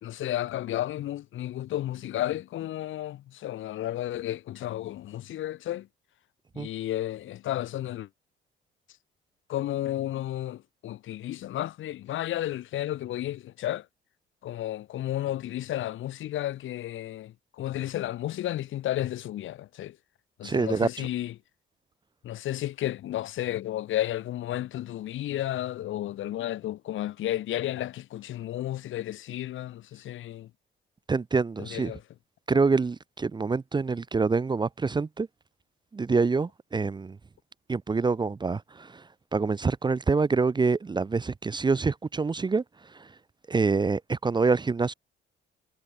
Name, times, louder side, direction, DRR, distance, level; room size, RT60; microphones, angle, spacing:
voice 1, 0.0-5.9 6.5-8.1 9.5-13.8 14.4-19.9 20.4-21.3 22.2-30.5 31.6-32.0, left 13 dB, 80° left, 2.5 m, -32 dB
voice 2, 20.4-21.1 31.1-31.9 32.5-35.3 35.9-37.2 37.7-39.0 39.3-42.6 42.9-43.1 43.5-44.9, right 4 dB, 20° right, 0.6 m, -26 dB
cardioid pair, 90°, 20 cm